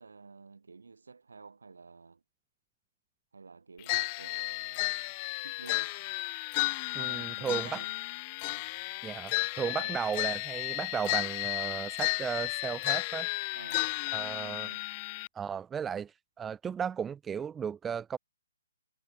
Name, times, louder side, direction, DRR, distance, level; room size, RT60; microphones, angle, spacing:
voice 1, 0.0-2.2 3.3-6.0 7.0-7.9 8.5-8.7 9.8-10.0 13.5-13.9 14.4-14.9, right 4 dB, 80° right, 3.8 m, -51 dB
sound 1, 3.9-15.3, left 29 dB, 30° left, 1.7 m, -33 dB
voice 2, 6.9-7.8 9.0-13.3 14.1-14.7 15.3-16.1 16.4-18.2, right 7 dB, 10° right, 0.7 m, -35 dB
figure-of-eight pair, 135°, 0 cm